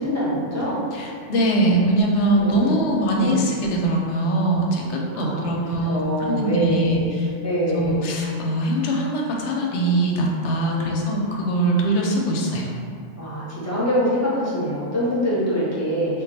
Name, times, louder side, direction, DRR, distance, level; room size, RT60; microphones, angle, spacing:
voice 1, 0.0-0.8 2.4-2.8 3.2-3.4 5.1-5.5 5.9-7.1 7.4-8.1 10.7-11.0 13.2-16.2, equal, 15° left, -9 dB, 0.6 m, -24 dB
voice 2, 0.9-7.3 7.7-12.7, right 1 dB, 65° left, -1 dB, 0.8 m, -22 dB
2.3 x 2.2 x 3.9 m, 2.3 s
omnidirectional pair, 1.3 m